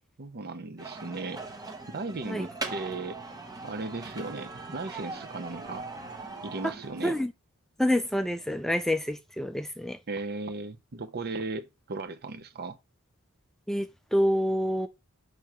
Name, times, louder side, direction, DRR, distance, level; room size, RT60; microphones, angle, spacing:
voice 1, 0.2-1.4 1.9-3.2 3.6-5.9 6.4-7.2 10.1-12.8, right 3 dB, 45° right, 0.7 m, -36 dB
sound 1, 0.8-7.2, right 3 dB, 20° right, 1.1 m, -40 dB
voice 2, 7.8-10.0 13.7-13.9 14.1-14.9, equal, ahead, 0.4 m, -27 dB
6.5 x 3.3 x 6.0 m
head